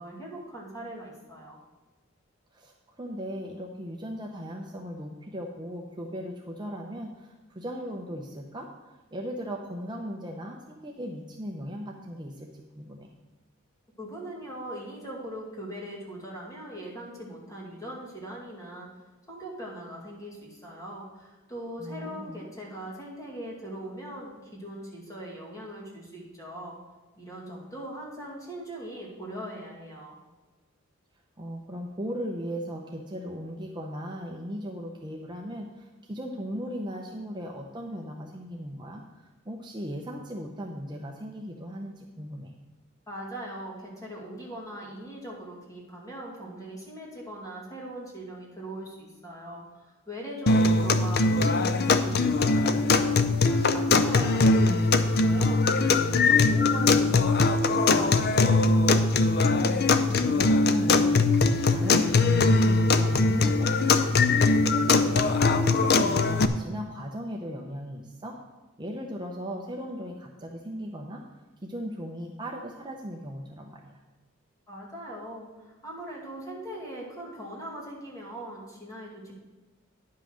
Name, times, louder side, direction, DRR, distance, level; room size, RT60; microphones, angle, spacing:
voice 1, 0.0-1.6 14.0-18.9 19.3-26.8 27.2-30.2 43.1-55.6 56.1-59.1 74.7-79.4, right 1 dB, 15° left, -3 dB, 2.4 m, -40 dB
voice 2, 2.5-13.1 21.8-22.4 31.4-42.5 50.8-51.1 60.0-61.2 61.5-68.4 68.8-71.2 71.6-74.0, equal, 20° right, 1 dB, 0.7 m, -37 dB
sound 1, 50.5-66.5, left 3 dB, 50° left, 0.5 m, -21 dB
10.0 x 5.7 x 6.3 m, 1.2 s
head